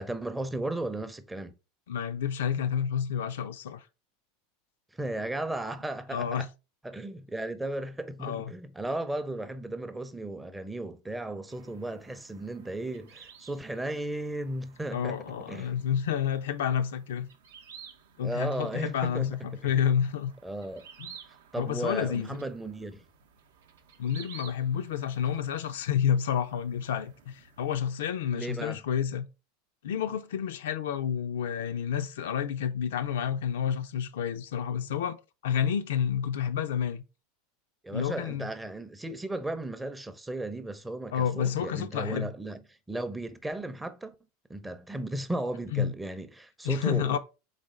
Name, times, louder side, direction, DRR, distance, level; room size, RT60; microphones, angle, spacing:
voice 1, 0.0-1.5 5.0-6.5 6.8-15.2 15.5-15.8 18.2-19.7 20.4-20.9 21.5-23.0 28.3-28.8 37.8-42.6 42.9-44.1 44.5-47.2, right 1 dB, 10° right, 0.5 m, -35 dB
voice 2, 1.9-3.8 6.1-6.5 8.2-8.5 14.9-17.3 18.2-20.3 21.0-21.1 21.6-22.5 24.0-29.3 29.8-37.0 37.9-38.5 41.1-42.3 45.7-45.9 46.6-47.2, left 8 dB, 70° left, 0.4 m, -29 dB
sound 1, 11.5-27.8, right 7 dB, 70° right, 0.6 m, -54 dB
4.0 x 3.6 x 3.2 m
hypercardioid pair, 85°, 0 cm